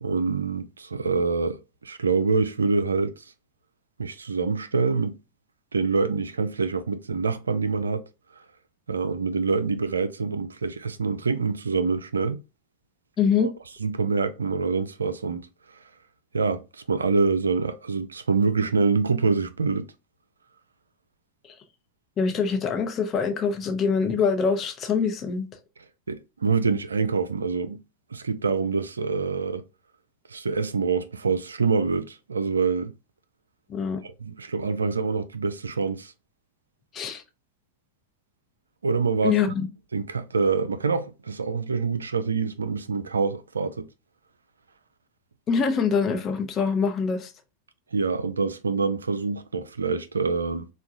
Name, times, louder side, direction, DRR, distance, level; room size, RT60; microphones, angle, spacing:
voice 1, 0.0-3.1 4.0-5.2 5.7-8.1 8.9-12.4 13.4-13.5 13.8-15.5 16.3-19.9 26.1-27.8 28.1-29.6 30.3-32.9 34.2-36.1 38.8-39.4 39.9-43.9 47.9-50.7, right 4 dB, 75° right, 0.3 m, -25 dB
voice 2, 13.2-13.5 22.2-25.6 33.7-34.0 36.9-37.2 39.2-39.7 45.5-47.3, left 6 dB, 30° left, 0.8 m, -24 dB
4.6 x 2.2 x 2.4 m
figure-of-eight pair, 85°, 0 cm